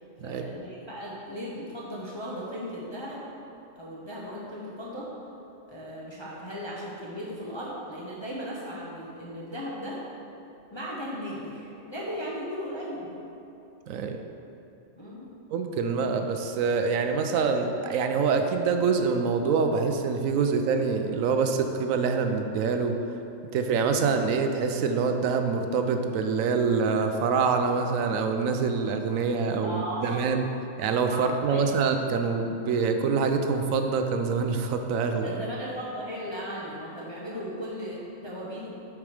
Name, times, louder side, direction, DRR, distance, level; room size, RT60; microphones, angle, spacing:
voice 1, 0.2-3.2 3.8-5.1 5.7-10.0 10.7-13.1 15.0-15.3 29.6-30.2 31.1-31.6 35.2-38.7, equal, 25° left, -6 dB, 0.7 m, -36 dB
voice 2, 13.9-14.2 15.5-23.0 23.5-30.5 30.8-35.4, right 5 dB, 75° right, 5 dB, 0.9 m, -25 dB
7.2 x 4.7 x 4.9 m, 3.0 s
omnidirectional pair, 1.5 m